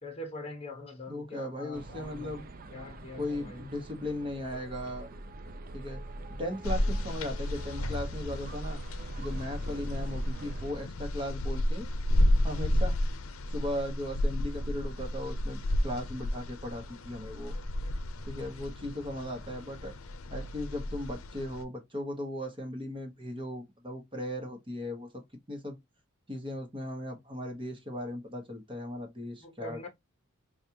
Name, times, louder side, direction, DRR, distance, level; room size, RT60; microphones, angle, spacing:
voice 1, 0.0-2.4 2.7-3.7 4.5-4.9 29.4-29.9, left 1 dB, 30° left, 1.1 m, -43 dB
voice 2, 1.1-2.5 3.1-5.1 5.7-6.0 6.4-8.8 9.2-11.9 12.4-13.0 13.5-17.5 18.2-19.9 20.3-25.2 25.5-25.8 26.3-29.9, left 1 dB, 25° right, 1.1 m, -37 dB
sound 1, 1.7-10.7, right 2 dB, 40° right, 0.4 m, -43 dB
sound 2, 6.6-21.6, left 1 dB, 75° left, 0.6 m, -32 dB
5.0 x 2.4 x 2.8 m
head